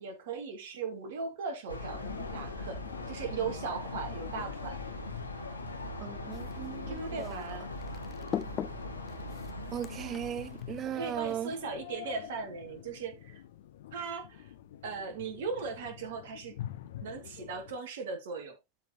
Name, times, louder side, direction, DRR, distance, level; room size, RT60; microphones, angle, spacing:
voice 1, 0.0-2.8 3.1-4.8 6.9-7.7 10.8-13.4 13.9-14.5 14.8-16.6 17.0-18.6, right 5 dB, 55° right, 2.5 m, -38 dB
sound 1, 1.7-10.9, left 2 dB, 80° left, 1.8 m, -41 dB
sound 2, 1.9-17.8, left 12 dB, 55° left, 0.9 m, -47 dB
voice 2, 6.0-7.3 9.7-11.5, right 10 dB, 30° right, 0.4 m, -37 dB
sound 3, 6.3-11.4, left 10 dB, 30° left, 0.7 m, -42 dB
12.5 x 4.4 x 3.0 m
figure-of-eight pair, 90°, 0 cm